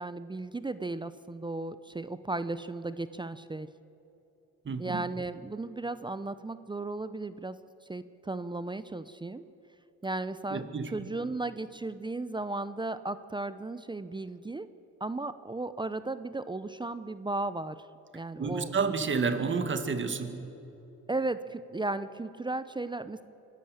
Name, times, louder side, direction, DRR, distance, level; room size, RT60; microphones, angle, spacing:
voice 1, 0.0-3.7 4.8-7.6 7.9-9.4 10.0-14.7 15.0-17.8 18.1-18.7 21.1-23.2, right 2 dB, 15° right, 13 dB, 0.7 m, -35 dB
voice 2, 4.7-5.0 10.5-10.9 18.4-20.4, right 5 dB, 40° right, 9 dB, 2.2 m, -30 dB
25.0 x 14.5 x 8.9 m, 3.0 s
cardioid pair, 90°, 30 cm